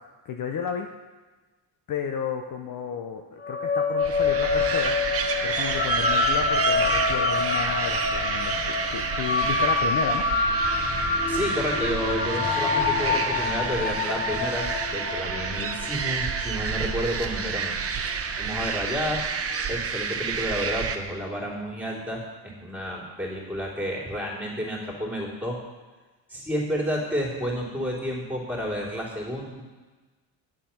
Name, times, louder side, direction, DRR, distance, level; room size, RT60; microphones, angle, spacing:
voice 1, 0.2-0.9 1.9-5.0 5.4-10.2, left 7 dB, 50° left, 4 dB, 0.8 m, -32 dB
sound 1, 3.4-18.1, left 3 dB, 25° left, 0.9 m, -26 dB
sound 2, 4.0-21.0, right 6 dB, 35° right, 0.8 m, -30 dB
voice 2, 11.3-17.7 18.4-19.2 19.7-25.6 26.3-29.6, equal, 5° right, -2 dB, 3.1 m, -30 dB
8.9 x 7.4 x 5.8 m, 1.3 s
cardioid pair, 115°, 43 cm